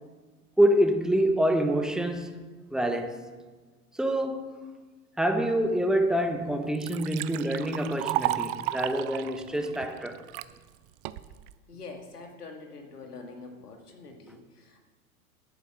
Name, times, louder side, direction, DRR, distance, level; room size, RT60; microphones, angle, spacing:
voice 1, 0.6-2.3 2.7-3.2 3.9-4.6 5.2-10.2, right 1 dB, ahead, 1.0 m, -26 dB
Liquid, 6.0-6.1 6.5-10.5 11.1-11.5, right 15 dB, 40° right, 0.5 m, -33 dB
voice 2, 11.7-14.8, left 3 dB, 85° left, 2.4 m, -45 dB
11.0 x 9.3 x 6.3 m
hypercardioid pair, 100°, 45 cm